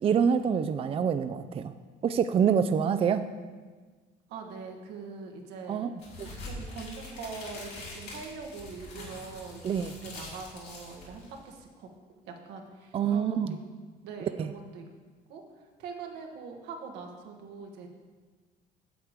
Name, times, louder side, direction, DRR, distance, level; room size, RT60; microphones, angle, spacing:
voice 1, 0.0-1.7 2.0-3.3 5.7-5.9 9.6-9.9 12.9-13.5 14.4-14.5, right 7 dB, 35° right, 10 dB, 0.4 m, -26 dB
voice 2, 4.3-5.8 6.2-11.9 12.3-13.6 14.0-14.9 15.3-17.9, right 4 dB, 90° right, 2 dB, 1.4 m, -43 dB
sound 1, 6.0-11.5, left 2 dB, 70° left, 3.2 m, -44 dB
8.0 x 7.3 x 5.0 m, 1.4 s
cardioid pair, 110°, 17 cm